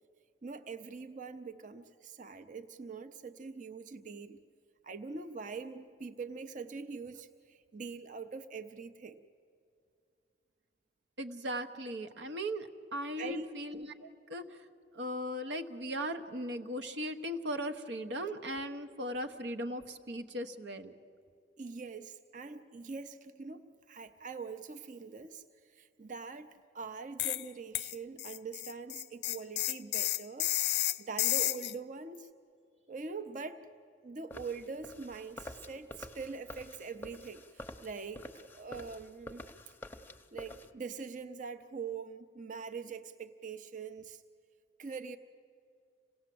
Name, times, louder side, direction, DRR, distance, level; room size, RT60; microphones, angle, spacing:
voice 1, 0.4-4.4 4.8-9.2 13.2-13.5 21.6-26.5 26.7-30.5 31.0-32.3 32.9-33.7 34.0-39.4 40.3-44.2 44.8-45.2, right 4 dB, 45° right, 9 dB, 0.6 m, -43 dB
voice 2, 11.2-14.7 14.9-20.9, equal, 90° right, 7 dB, 1.1 m, -38 dB
sound 1, 27.2-27.5 27.7-31.7, left 15 dB, 70° left, 0.4 m, -32 dB
sound 2, 34.3-40.7, left 1 dB, 10° left, 0.8 m, -48 dB
27.0 x 17.5 x 7.7 m, 2.5 s
head